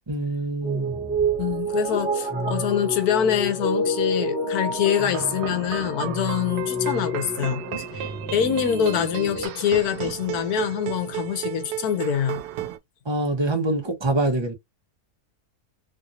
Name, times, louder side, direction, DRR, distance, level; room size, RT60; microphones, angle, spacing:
voice 1, 0.1-1.0 13.1-14.5, right 2 dB, 20° right, 0.8 m, -25 dB
sound 1, 0.6-9.5, right 1 dB, 5° right, 1.2 m, -28 dB
voice 2, 1.4-12.4, left 9 dB, 75° left, 1.2 m, -25 dB
sound 2, 4.7-12.8, right 10 dB, 85° right, 1.1 m, -34 dB
3.2 x 2.5 x 2.8 m
omnidirectional pair, 1.7 m